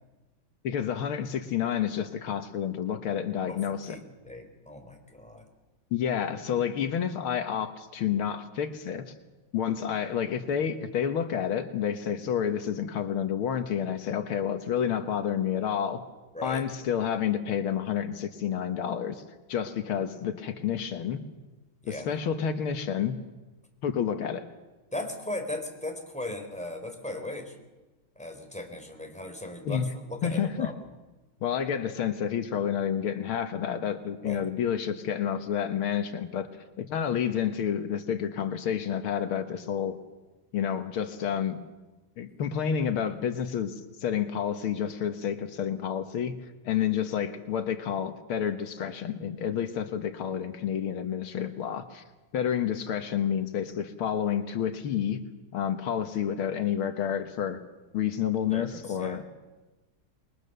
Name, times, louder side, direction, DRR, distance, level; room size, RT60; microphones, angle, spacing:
voice 1, 0.6-4.0 5.9-9.1 9.5-16.0 16.4-19.2 19.5-21.2 21.9-23.2 23.8-24.5 29.7-29.9 30.2-30.7 31.4-36.5 36.8-40.0 40.5-41.6 42.2-43.7 44.0-46.4 46.7-52.0 52.3-55.2 55.5-57.6 57.9-59.2, left 8 dB, 85° left, 9 dB, 2.1 m, -29 dB
voice 2, 3.5-5.5 16.3-16.6 21.8-22.1 24.9-27.6 28.2-30.7 34.2-34.5 58.5-59.2, left 1 dB, 5° left, 4 dB, 3.8 m, -38 dB
28.0 x 21.5 x 6.8 m, 1.1 s
omnidirectional pair, 2.3 m